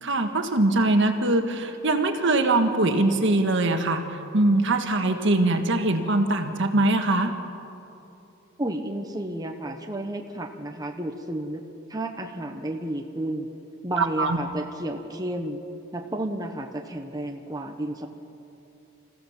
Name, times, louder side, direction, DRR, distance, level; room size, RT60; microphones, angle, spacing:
voice 1, 0.0-4.0 4.3-7.3 14.0-14.4, right 2 dB, 60° right, 6 dB, 1.6 m, -22 dB
voice 2, 8.6-11.6 11.9-13.5 13.8-15.6 15.9-18.1, right 1 dB, 20° right, 3 dB, 1.1 m, -32 dB
27.5 x 15.5 x 7.3 m, 2.8 s
head